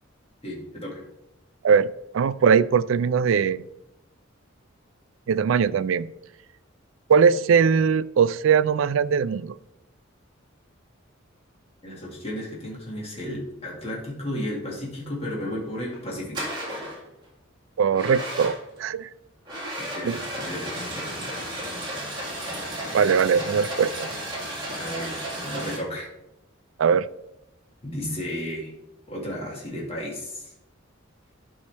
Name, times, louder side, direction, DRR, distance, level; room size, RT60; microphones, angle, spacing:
voice 1, 0.4-1.0 11.8-16.5 19.8-21.1 22.8-23.5 24.8-26.1 27.8-28.7 29.1-30.5, left 1 dB, 30° left, -4 dB, 2.1 m, -34 dB
voice 2, 2.1-3.6 5.3-6.1 7.1-9.5 17.8-18.5 18.8-19.1 20.0-20.2 22.9-24.1 26.8-27.1, right 6 dB, 75° right, 16 dB, 0.3 m, -20 dB
sound 1, 15.7-16.0 16.3-17.0 17.9-18.8 19.4-25.8, right 1 dB, 25° right, 2.2 m, -33 dB
11.5 x 5.5 x 3.4 m, 0.88 s
head